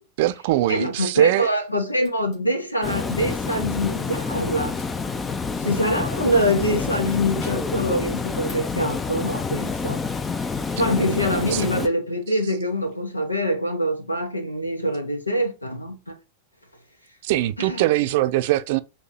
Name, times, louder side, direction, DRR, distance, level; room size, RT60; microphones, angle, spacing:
voice 1, 0.2-1.5 11.5-11.7 17.2-18.8, right 16 dB, 50° right, 0.4 m, -22 dB
voice 2, 0.7-4.8 5.6-10.0 10.8-16.2 17.6-17.8, equal, 85° left, 1.0 m, -24 dB
sound 1, 2.0-2.4 3.1-3.7 4.0-6.1 6.6-7.8 8.2-8.8, left 4 dB, 50° left, 2.8 m, -47 dB
Water, 2.8-11.9, left 4 dB, 15° left, 0.5 m, -28 dB
5.7 x 2.9 x 2.7 m
figure-of-eight pair, 90°, 0 cm